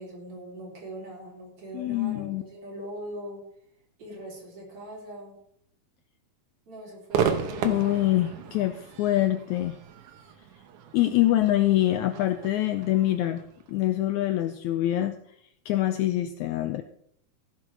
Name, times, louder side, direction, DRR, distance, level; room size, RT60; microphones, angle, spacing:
voice 1, 0.0-3.4 4.0-5.4 6.7-8.0, right 1 dB, 45° right, -3 dB, 4.4 m, -41 dB
voice 2, 1.7-2.4 7.6-9.8 10.9-13.4 13.7-15.2 15.7-16.8, left 14 dB, 80° left, 9 dB, 1.7 m, -25 dB
Crowd / Fireworks, 7.1-14.4, right 7 dB, 70° right, 2.4 m, -34 dB
16.0 x 7.6 x 4.6 m, 0.69 s
omnidirectional pair, 3.8 m